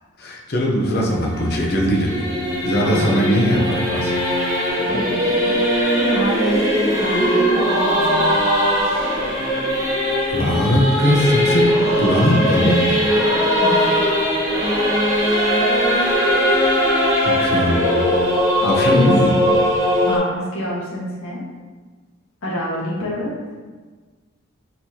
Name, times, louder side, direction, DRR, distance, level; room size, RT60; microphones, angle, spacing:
voice 1, 0.2-2.2 2.6-4.1 10.3-11.6 12.0-13.0 17.2-17.8 18.6-19.3, equal, 50° left, -1 dB, 0.7 m, -19 dB
Singing / Musical instrument, 0.8-20.2, equal, 15° right, 1.0 m, -19 dB
voice 2, 2.8-3.3 4.9-5.6 5.9-8.4 13.6-14.0 18.6-19.1 20.0-21.4 22.4-23.3, left 1 dB, 85° left, -6 dB, 1.5 m, -27 dB
4.5 x 4.0 x 2.8 m, 1.4 s
head